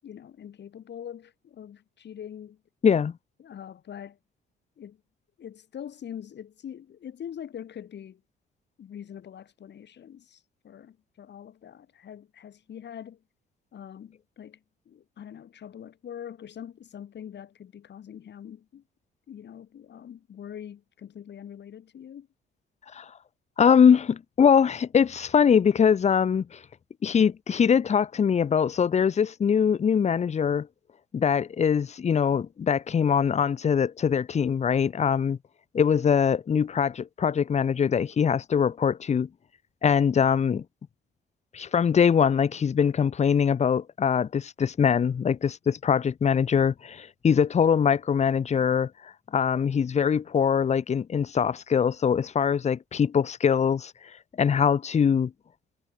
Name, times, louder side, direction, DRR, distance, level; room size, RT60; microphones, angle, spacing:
voice 1, 0.0-2.6 3.4-4.2 4.8-5.0 5.4-8.2 8.8-13.2 13.7-14.6 14.9-18.8 19.3-22.3, left 9 dB, 60° left, 7.9 m, -43 dB
voice 2, 23.6-26.6 27.0-30.7 31.1-35.4 35.7-39.3 39.8-40.6 41.5-48.9 49.3-53.9 54.4-55.3, left 7 dB, 35° left, 0.7 m, -22 dB
cardioid pair, 90°, 20 cm